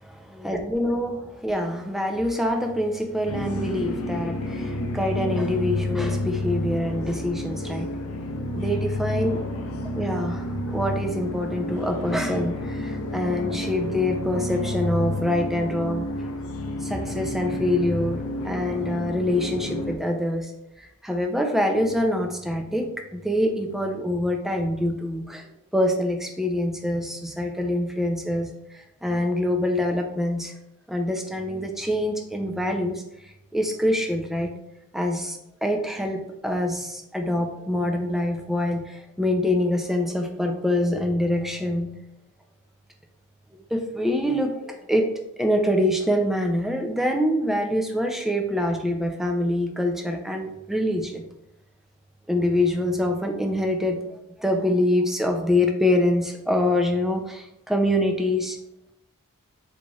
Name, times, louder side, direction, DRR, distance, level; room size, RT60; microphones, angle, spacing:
voice 1, 0.4-7.9 8.5-9.4 9.9-16.1 16.8-20.5 20.8-25.5 25.7-28.5 29.0-30.5 30.9-33.0 33.5-34.5 34.9-42.0 43.7-45.1 45.4-51.2 52.3-54.0 54.4-58.6, left 1 dB, ahead, 3 dB, 0.4 m, -25 dB
sound 1, 3.3-20.0, left 1 dB, 75° left, 0.5 m, -30 dB
3.9 x 3.1 x 2.3 m, 0.85 s
head